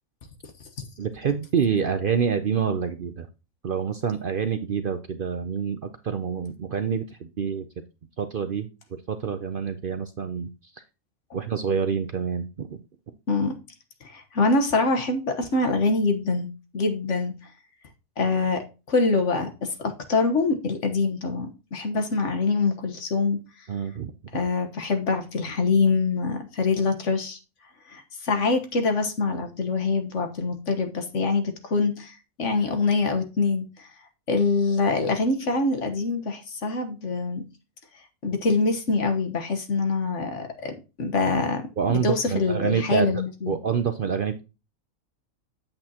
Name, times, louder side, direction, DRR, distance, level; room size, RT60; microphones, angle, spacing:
voice 1, 1.0-3.3 3.6-7.7 8.2-10.8 11.3-12.8 23.7-24.1 41.8-43.1 43.5-44.4, right 7 dB, 55° right, 0.7 m, -27 dB
voice 2, 14.0-16.5 16.7-17.4 18.2-23.4 24.3-27.4 27.9-33.9 34.3-37.4 38.2-43.5, left 3 dB, 60° left, 1.6 m, -25 dB
8.7 x 7.6 x 2.9 m
omnidirectional pair, 1.4 m